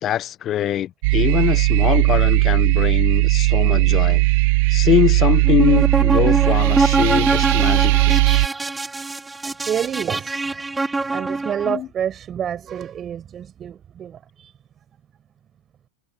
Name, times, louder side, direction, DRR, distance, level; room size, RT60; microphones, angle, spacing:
voice 1, 0.0-4.3 4.7-8.2 11.6-11.9, left 12 dB, 30° left, 0.9 m, -22 dB
sound 1, 1.0-8.5, right 26 dB, 50° right, 0.8 m, -17 dB
sound 2, 5.4-11.8, right 3 dB, 10° right, 2.5 m, -23 dB
voice 2, 6.4-6.7 7.2-7.3 8.5-8.6 9.4-14.6, right 9 dB, 25° right, 6.1 m, -29 dB
figure-of-eight pair, 90°, 0 cm